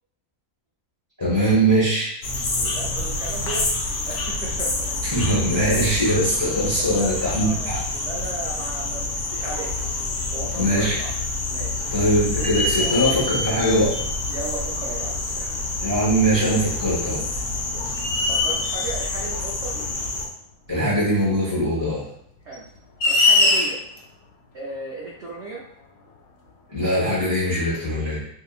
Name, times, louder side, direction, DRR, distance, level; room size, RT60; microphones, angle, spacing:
voice 1, 1.2-2.1 5.1-7.8 10.6-10.9 11.9-13.9 15.8-17.2 20.7-22.0 26.7-28.2, right 1 dB, 20° left, -9 dB, 0.6 m, -21 dB
sound 1, 2.2-20.3, left 3 dB, 65° left, 0.8 m, -28 dB
voice 2, 2.5-3.7 4.0-5.0 6.9-9.7 10.3-11.1 11.5-11.9 12.8-13.0 14.3-15.6 18.3-19.8 22.4-22.6 23.1-23.8 24.5-25.6, right 2 dB, 70° right, -5 dB, 0.6 m, -35 dB
sound 2, 9.8-9.9 10.4-11.1 11.5-11.6 12.4-14.2 15.2-15.3 17.2-17.4 17.9-19.0 20.9-21.0 22.5-24.0, left 2 dB, 90° left, 1.2 m, -23 dB
2.7 x 2.4 x 2.3 m, 0.71 s
omnidirectional pair, 1.7 m